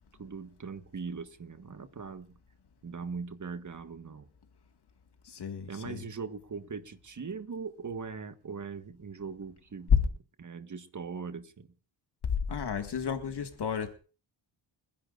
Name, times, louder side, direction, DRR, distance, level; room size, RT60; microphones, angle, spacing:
voice 1, 0.2-2.3 2.8-4.3 5.7-9.9 10.4-11.7, right 5 dB, 40° right, 1.6 m, -40 dB
voice 2, 5.2-6.0 9.9-10.1 12.2-13.9, left 7 dB, 55° left, 1.9 m, -29 dB
30.0 x 11.0 x 2.5 m
cardioid pair, 80°, 47 cm